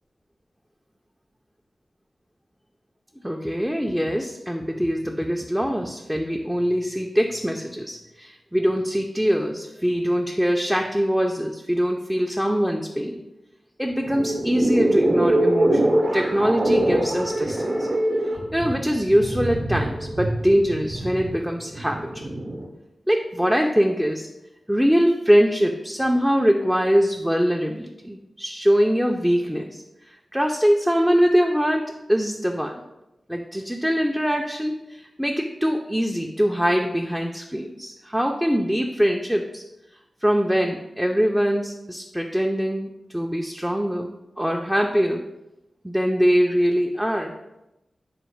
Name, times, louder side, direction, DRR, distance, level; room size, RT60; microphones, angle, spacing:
voice 1, 3.2-13.2 13.8-17.9 18.5-22.3 23.1-24.3 24.7-29.8 30.3-32.8 33.3-39.6 40.2-42.9 43.1-45.2 45.8-47.3, equal, 5° right, 1 dB, 0.3 m, -23 dB
sound 1, 13.9-22.7, right 1 dB, 55° right, 0.6 m, -24 dB
4.0 x 2.1 x 4.4 m, 0.93 s
cardioid pair, 60°, 0 cm